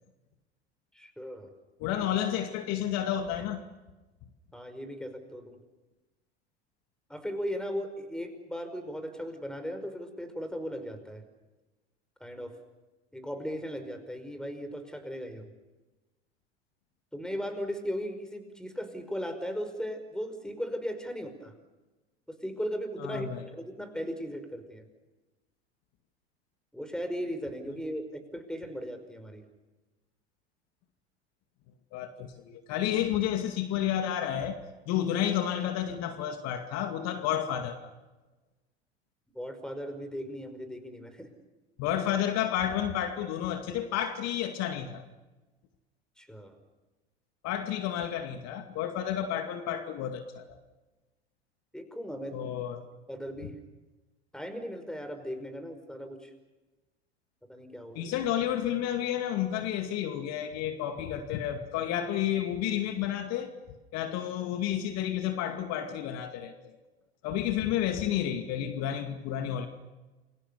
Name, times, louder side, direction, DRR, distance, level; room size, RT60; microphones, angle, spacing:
voice 1, 0.9-1.5 4.5-5.6 7.1-11.2 12.2-12.5 13.1-15.5 17.1-21.5 22.3-24.8 26.7-29.4 39.4-41.3 46.2-46.6 51.7-52.4 53.1-53.5 54.3-56.3 57.5-58.1, equal, ahead, 5.2 m, -37 dB
voice 2, 1.8-3.6 23.0-23.5 31.9-34.6 34.9-37.9 41.8-45.0 47.4-50.6 52.3-52.9 57.9-63.5 63.9-66.8 67.2-69.7, left 10 dB, 50° left, 2.3 m, -31 dB
29.0 x 23.5 x 6.9 m
hypercardioid pair, 85°, 33 cm